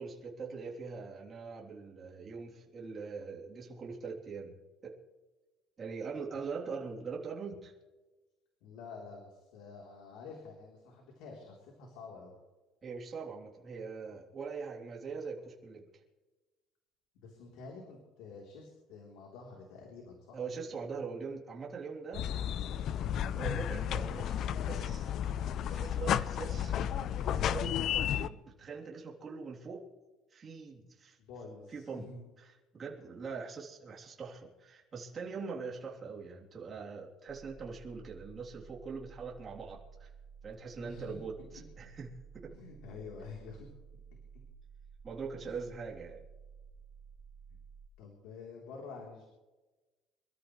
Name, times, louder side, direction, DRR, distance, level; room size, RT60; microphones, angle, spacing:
voice 1, 0.0-5.0 5.8-7.7 12.8-15.9 20.3-22.3 23.4-25.1 25.6-29.8 30.3-31.2 31.7-32.1 32.4-40.1 40.4-41.3 41.8-42.5 45.0-46.2, right 5 dB, 30° right, -3 dB, 3.5 m, -42 dB
voice 2, 8.6-12.3 17.2-20.4 31.2-32.2 40.8-41.5 42.5-43.7 45.4-45.6 48.0-49.3, left 4 dB, 85° left, -1 dB, 3.8 m, -48 dB
sound 1, 22.1-28.3, left 10 dB, 50° left, 0.6 m, -33 dB
sound 2, 37.3-47.9, right 6 dB, 85° right, 3.6 m, -54 dB
26.5 x 13.5 x 3.3 m, 1.2 s
cardioid pair, 150°, 0 cm